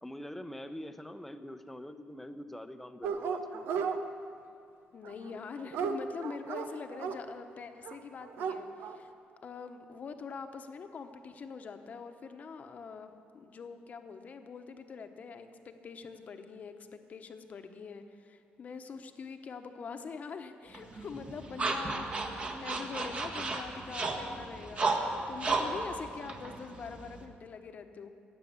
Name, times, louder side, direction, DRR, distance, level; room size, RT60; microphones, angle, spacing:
voice 1, 0.0-3.6 21.3-21.4, left 1 dB, 5° left, 9 dB, 0.7 m, -44 dB
Dog, 3.0-4.0 5.1-7.2 7.9-8.0 8.2-9.0, right 6 dB, 80° right, 0.8 m, -34 dB
voice 2, 4.9-9.1 9.4-28.1, left 5 dB, 45° left, 7 dB, 1.0 m, -44 dB
sound 1, 20.7-27.2, right 3 dB, 35° right, 1.5 m, -34 dB
16.0 x 9.1 x 7.3 m, 2.6 s
cardioid pair, 115°, 4 cm